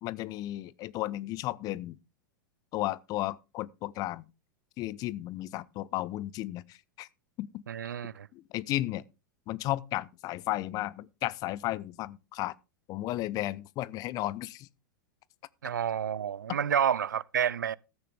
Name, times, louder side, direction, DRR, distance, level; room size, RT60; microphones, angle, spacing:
voice 1, 0.0-2.0 2.7-4.2 4.8-7.1 7.4-7.5 8.3-9.0 9.5-12.5 12.9-14.7, left 16 dB, 35° left, 0.7 m, -34 dB
voice 2, 7.7-8.3 15.6-17.8, right 8 dB, 75° right, 0.5 m, -29 dB
14.0 x 9.3 x 3.6 m
figure-of-eight pair, 90°, 10 cm